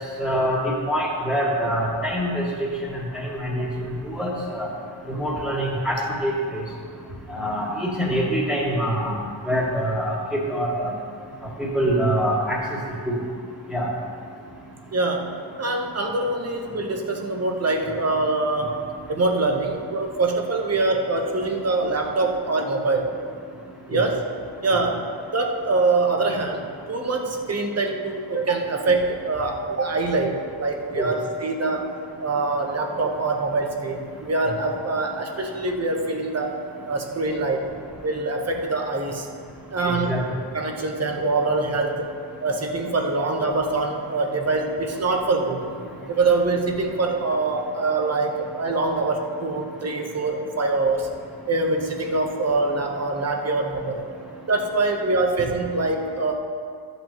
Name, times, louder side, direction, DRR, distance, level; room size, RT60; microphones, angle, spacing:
voice 1, 0.2-2.4 2.8-4.7 5.1-6.6 7.3-9.1 9.5-10.2 10.5-10.9 11.6-12.6 13.1-13.2 13.7-13.9 23.9-24.0 31.0-31.1 39.9-40.2, equal, ahead, -10 dB, 1.5 m, -25 dB
voice 2, 14.9-18.8 19.1-23.1 23.9-24.2 24.6-25.0 25.3-31.9 32.2-37.7 38.0-39.3 39.7-40.2 40.5-42.1 42.4-45.6 46.1-51.1 51.5-54.0 54.5-56.3, right 3 dB, 35° right, 2 dB, 0.9 m, -24 dB
14.0 x 8.0 x 3.0 m, 2.2 s
wide cardioid pair, 165°, 46 cm